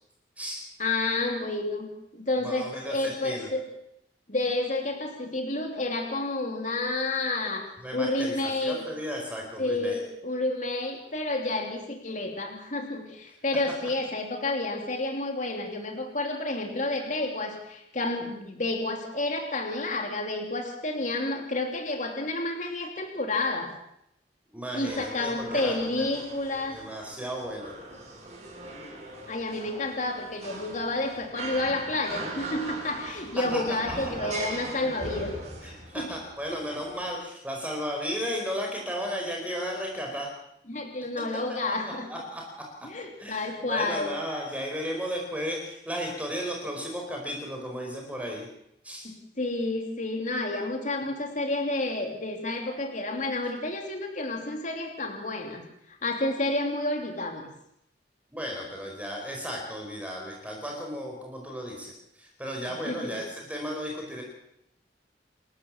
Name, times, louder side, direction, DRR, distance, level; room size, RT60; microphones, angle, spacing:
voice 1, 0.8-3.6 4.3-7.6 7.9-8.8 9.6-23.7 24.7-26.8 29.3-35.3 35.9-36.1 36.5-36.6 40.7-42.1 42.8-44.1 49.0-55.6 56.0-57.5 62.8-63.2, left 2 dB, 45° left, 3 dB, 3.1 m, -30 dB
voice 2, 2.4-3.5 7.8-10.0 24.5-26.1 26.7-27.7 33.5-33.8 35.6-40.3 42.1-42.6 43.2-48.5 48.8-49.0 58.3-64.2, equal, 10° right, 0 dB, 4.6 m, -34 dB
sound 1, 24.9-37.1, right 2 dB, 40° right, 7.4 m, -40 dB
28.5 x 13.5 x 7.4 m, 0.77 s
head